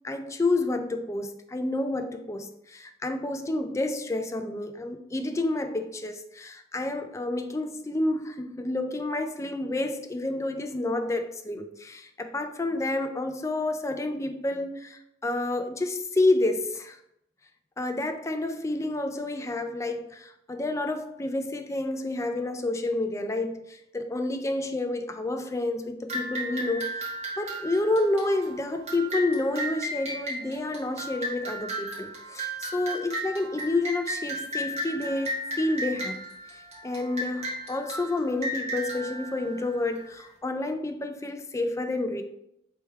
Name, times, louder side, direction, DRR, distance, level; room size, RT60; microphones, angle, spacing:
voice 1, 0.0-17.0 17.8-27.1 27.4-36.2 36.8-42.2, left 2 dB, 15° left, 0.4 m, -29 dB
sound 1, 26.1-40.2, right 1 dB, 35° right, 1.4 m, -35 dB
3.4 x 3.2 x 4.6 m
head